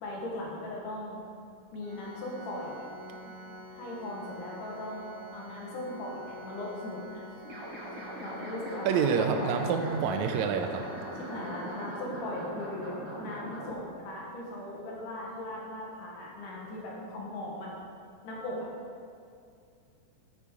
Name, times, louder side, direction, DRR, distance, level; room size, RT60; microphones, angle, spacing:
voice 1, 0.0-1.2 1.7-2.9 3.2-3.3 3.8-7.3 7.7-9.9 11.2-17.7 18.2-18.7, left 1 dB, 80° left, -3 dB, 2.9 m, -39 dB
Organ, 1.8-12.7, equal, 50° right, 1.4 m, -48 dB
sound 1, 7.4-13.7, equal, 25° right, 2.3 m, -41 dB
voice 2, 8.9-10.8, right 6 dB, 75° right, 5 dB, 1.8 m, -27 dB
8.4 x 7.1 x 4.7 m, 2.3 s
omnidirectional pair, 3.7 m